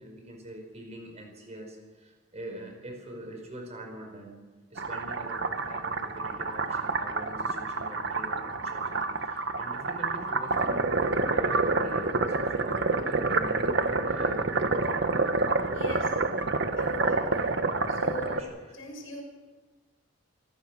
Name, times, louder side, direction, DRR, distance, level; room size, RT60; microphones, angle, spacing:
voice 1, 0.0-4.4 4.7-15.0 18.3-18.5, right 1 dB, 35° right, 2 dB, 5.2 m, -43 dB
sound 1, 4.8-18.4, right 3 dB, 60° right, 1.4 m, -28 dB
voice 2, 15.7-16.1 16.7-17.6 17.9-18.4 18.7-19.2, left 2 dB, 75° left, 2 dB, 6.3 m, -39 dB
27.0 x 17.5 x 6.4 m, 1.3 s
head